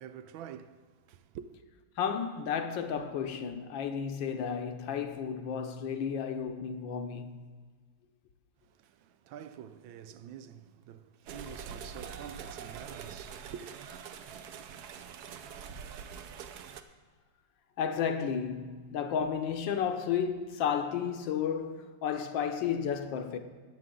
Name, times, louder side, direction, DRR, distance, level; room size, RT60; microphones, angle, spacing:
voice 1, 0.0-1.6 8.7-13.7, right 9 dB, 85° right, 1.4 m, -47 dB
voice 2, 2.0-7.4 17.8-23.4, left 7 dB, 75° left, 1.5 m, -32 dB
sound 1, 11.3-16.8, right 7 dB, 65° right, 1.0 m, -44 dB
19.5 x 7.7 x 3.8 m
omnidirectional pair, 2.1 m